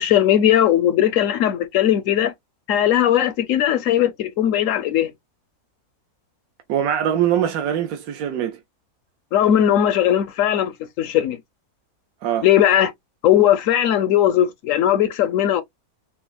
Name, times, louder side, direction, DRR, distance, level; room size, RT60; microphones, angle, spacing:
voice 1, 0.0-2.3 2.7-5.1 9.3-11.4 12.4-12.9 13.2-15.6, left 11 dB, 70° left, 0.8 m, -18 dB
voice 2, 6.7-8.6 12.2-12.5, right 10 dB, 75° right, 1.1 m, -22 dB
5.9 x 2.0 x 2.2 m
omnidirectional pair, 1.6 m